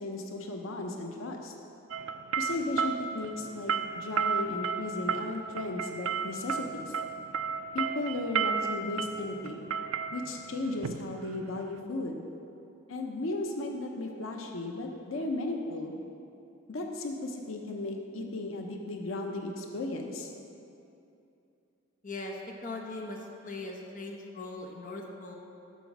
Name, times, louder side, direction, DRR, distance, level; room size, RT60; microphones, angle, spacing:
voice 1, 0.0-1.5 2.4-7.0 7.7-9.7 10.1-12.2 12.9-15.9 16.7-20.3, left 2 dB, 85° left, 2 dB, 0.7 m, -35 dB
sound 1, 1.9-11.8, right 6 dB, 85° right, 0.4 m, -33 dB
voice 2, 22.0-22.3 22.6-25.4, left 2 dB, 40° left, 1 dB, 0.9 m, -40 dB
8.2 x 6.0 x 6.0 m, 2.7 s
head